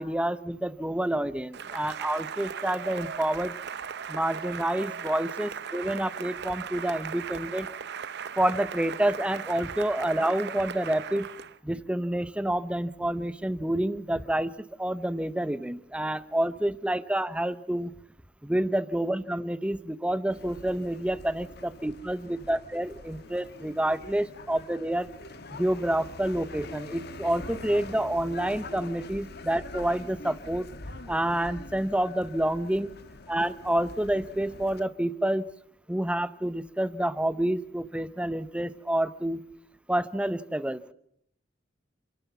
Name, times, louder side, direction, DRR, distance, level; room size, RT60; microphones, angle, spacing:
voice 1, 0.0-3.6 4.1-7.7 8.4-11.3 11.6-14.5 14.8-17.9 18.4-25.1 25.5-30.7 31.1-32.9 33.3-35.5 35.9-39.4 39.9-40.9, right 1 dB, 5° right, 14 dB, 0.7 m, -28 dB
Cheering / Applause, 1.5-11.6, right 7 dB, 60° right, 0.7 m, -38 dB
sound 1, 20.3-34.8, left 2 dB, 60° left, 1.3 m, -44 dB
28.0 x 11.5 x 8.3 m, 0.72 s
head